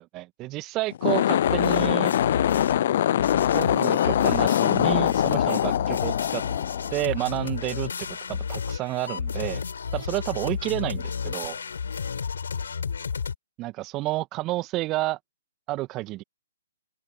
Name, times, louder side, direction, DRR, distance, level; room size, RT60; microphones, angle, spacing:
voice 1, 0.1-2.1 3.5-6.4 6.9-7.9 8.3-9.6 9.9-11.6 13.6-15.2 15.7-16.2, right 18 dB, 25° right, 2.0 m, -30 dB
sound 1, 0.9-7.4, left 11 dB, 50° left, 0.3 m, -23 dB
sound 2, 1.4-2.9 3.2-13.3, left 6 dB, 70° left, 7.1 m, -32 dB
open air
figure-of-eight pair, 130°, 0 cm